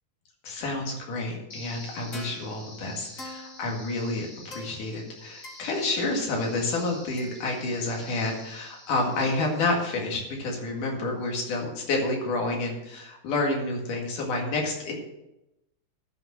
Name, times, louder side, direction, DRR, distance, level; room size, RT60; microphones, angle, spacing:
voice 1, 0.4-14.9, left 2 dB, 90° left, 0 dB, 3.7 m, -29 dB
sound 1, 1.5-10.5, left 1 dB, 30° left, 2.6 m, -45 dB
12.5 x 6.2 x 6.4 m, 0.90 s
omnidirectional pair, 3.5 m